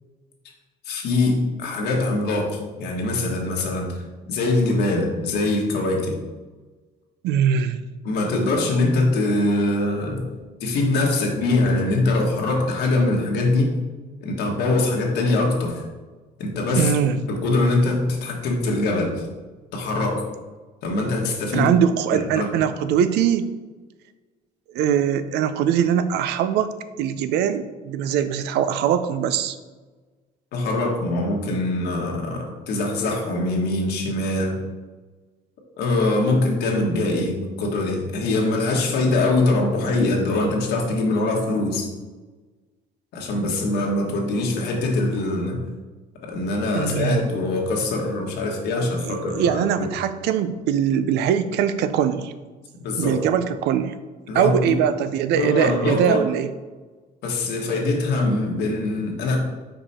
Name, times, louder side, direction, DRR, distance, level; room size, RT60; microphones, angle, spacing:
voice 1, 0.8-6.1 8.0-10.2 10.6-13.7 14.2-15.8 16.4-19.2 19.7-20.3 20.8-21.7 22.1-22.5 30.5-34.6 35.8-41.9 43.1-45.6 46.2-49.9 52.8-53.2 54.3-54.5 55.3-56.3 57.2-59.4, left 2 dB, 75° left, 0 dB, 1.5 m, -23 dB
voice 2, 7.2-7.8 16.7-17.2 21.5-23.5 24.7-29.6 46.7-47.2 49.1-52.3 53.0-54.0 54.3-56.5, right 9 dB, 80° right, 12 dB, 0.5 m, -22 dB
5.1 x 4.8 x 4.2 m, 1.3 s
cardioid pair, 110°, 17 cm